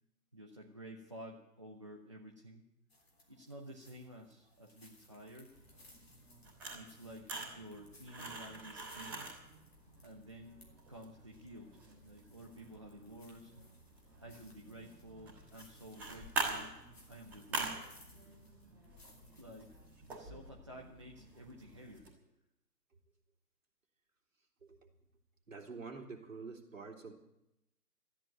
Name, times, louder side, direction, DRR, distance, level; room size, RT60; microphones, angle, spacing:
voice 1, 0.3-2.6 3.3-5.6 6.7-9.3 10.0-13.5 14.2-16.8 17.1-17.8 19.4-19.7 20.0-22.1, right 1 dB, 20° right, -2 dB, 0.8 m, -52 dB
sound 1, 2.9-20.2, left 2 dB, 40° left, 3.7 m, -65 dB
sound 2, 5.5-22.1, right 2 dB, 5° right, 1.5 m, -46 dB
voice 2, 25.5-27.1, right 4 dB, 50° right, 2 dB, 3.5 m, -47 dB
13.5 x 9.9 x 9.1 m, 0.86 s
figure-of-eight pair, 150°, 49 cm